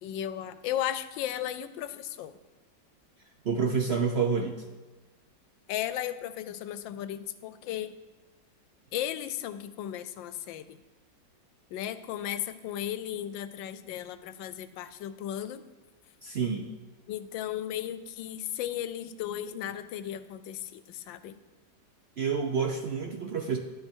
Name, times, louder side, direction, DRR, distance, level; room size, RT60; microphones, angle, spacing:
voice 1, 0.0-2.3 5.7-7.9 8.9-10.8 11.7-15.6 17.1-21.4, left 11 dB, 90° left, 12 dB, 1.3 m, -35 dB
voice 2, 3.4-4.6 16.2-16.7 22.2-23.6, right 5 dB, 75° right, 4 dB, 0.5 m, -28 dB
11.0 x 9.3 x 4.5 m, 1.2 s
omnidirectional pair, 2.0 m